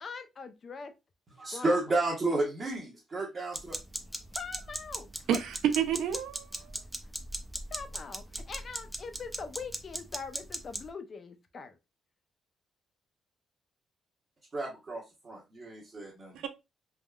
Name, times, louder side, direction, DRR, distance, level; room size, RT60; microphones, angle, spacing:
voice 1, 0.0-0.9 1.4-1.8 4.3-5.4 7.7-11.8, left 5 dB, 45° left, 0.5 m, -42 dB
voice 2, 1.4-3.8 14.5-16.5, right 2 dB, 35° right, 0.9 m, -32 dB
sound 1, 3.5-10.9, right 1 dB, 10° right, 0.5 m, -38 dB
voice 3, 5.3-6.7 16.3-16.5, right 9 dB, 85° right, 0.4 m, -29 dB
3.5 x 2.1 x 2.3 m
cardioid pair, 85°, 0 cm